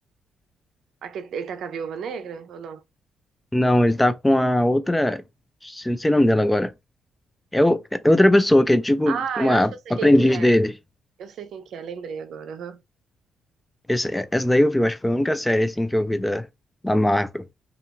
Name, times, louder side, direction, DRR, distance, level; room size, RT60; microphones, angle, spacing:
voice 1, 1.0-2.8 9.1-10.5 11.2-12.8, right 7 dB, 70° right, 0.4 m, -33 dB
voice 2, 3.5-5.2 5.6-6.7 7.5-10.7 13.9-16.5 16.8-17.4, left 1 dB, 10° left, 0.3 m, -20 dB
2.4 x 2.4 x 2.8 m
cardioid pair, 120°, 0 cm